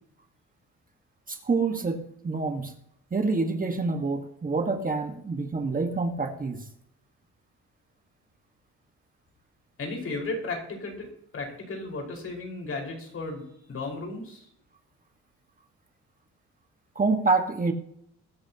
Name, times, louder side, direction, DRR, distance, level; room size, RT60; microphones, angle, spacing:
voice 1, 1.3-2.7 3.1-6.7 16.9-17.7, right 3 dB, 30° right, 4 dB, 1.5 m, -27 dB
voice 2, 9.8-11.1 11.3-14.5, left 3 dB, 50° left, 1 dB, 5.0 m, -35 dB
20.5 x 11.0 x 2.9 m, 0.73 s
cardioid pair, 90°, 30 cm